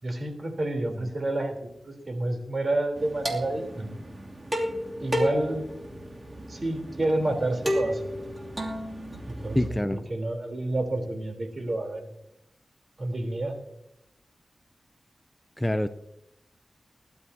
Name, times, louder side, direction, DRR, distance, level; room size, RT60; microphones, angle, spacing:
voice 1, 0.0-4.0 5.0-5.7 6.5-8.0 9.3-12.1 13.0-13.6, right 2 dB, 55° right, 4 dB, 3.7 m, -29 dB
sound 1, 3.0-9.7, equal, 40° right, 2.8 m, -33 dB
voice 2, 9.5-10.0 15.6-15.9, left 1 dB, 10° left, 11 dB, 0.7 m, -25 dB
21.5 x 12.0 x 2.8 m, 0.81 s
cardioid pair, 45°, 0 cm